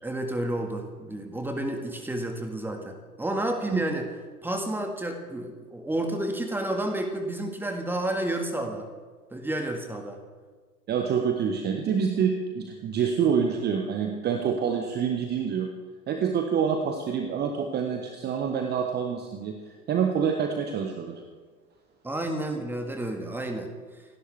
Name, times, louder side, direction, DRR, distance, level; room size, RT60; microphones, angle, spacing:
voice 1, 0.0-4.1 4.4-8.9 9.3-10.2 22.0-24.0, right 1 dB, 5° right, 4 dB, 1.7 m, -31 dB
voice 2, 10.9-15.7 16.1-19.5 19.9-21.2, right 7 dB, 20° right, 4 dB, 1.2 m, -27 dB
28.0 x 11.5 x 3.4 m, 1.5 s
figure-of-eight pair, 100°, 48 cm